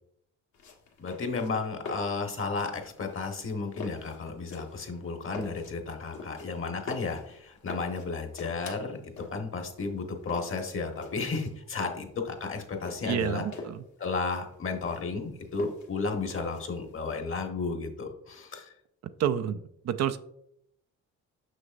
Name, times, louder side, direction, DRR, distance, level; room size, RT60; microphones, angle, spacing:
sound 1, 0.5-17.2, left 3 dB, 70° left, 1.5 m, -45 dB
voice 1, 1.0-9.0 9.3-13.4 14.0-18.7, left 4 dB, 45° left, 3 dB, 1.3 m, -33 dB
voice 2, 13.1-13.8 19.2-19.6 19.8-20.2, right 9 dB, 60° right, 10 dB, 0.5 m, -28 dB
6.4 x 6.1 x 2.5 m, 0.73 s
cardioid pair, 90°, 30 cm